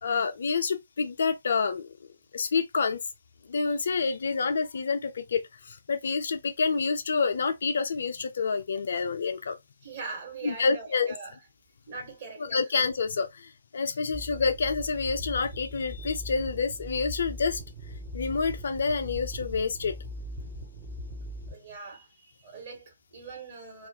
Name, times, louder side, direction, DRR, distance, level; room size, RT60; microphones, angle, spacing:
voice 1, 0.0-1.9 2.3-3.0 3.5-9.6 10.4-11.1 12.4-17.6 18.1-20.0, left 5 dB, 55° left, 0.3 m, -28 dB
voice 2, 9.8-11.4 11.9-12.6 21.5-23.9, right 4 dB, 40° right, 1.2 m, -42 dB
sound 1, 14.1-21.5, equal, 20° right, 0.5 m, -40 dB
2.3 x 2.1 x 2.6 m
figure-of-eight pair, 130°, 0 cm